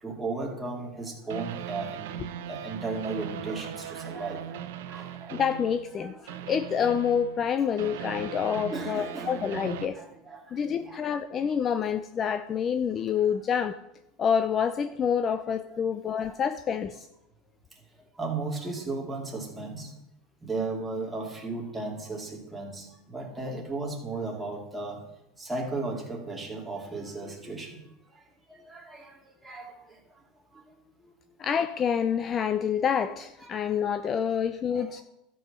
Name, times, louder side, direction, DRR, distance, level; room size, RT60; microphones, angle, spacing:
voice 1, 0.0-5.4 6.0-6.5 7.7-8.0 8.7-11.0 15.3-15.4 15.7-15.8 16.1-16.3 18.1-19.9 20.4-25.0 25.4-27.8 28.1-28.2 28.5-30.0 30.5-31.1 33.4-33.7 34.0-34.1 34.7-34.9, right 3 dB, 10° right, -1 dB, 2.4 m, -36 dB
Tribal Sci-Fi, 1.3-6.0 6.3-9.9, right 9 dB, 85° right, 0.8 m, -39 dB
voice 2, 5.3-6.1 6.5-10.0 10.5-13.8 14.2-17.1 31.4-35.0, left 7 dB, 30° left, 11 dB, 0.5 m, -27 dB
12.5 x 5.6 x 6.5 m, 0.87 s
supercardioid pair, 140°, 0 cm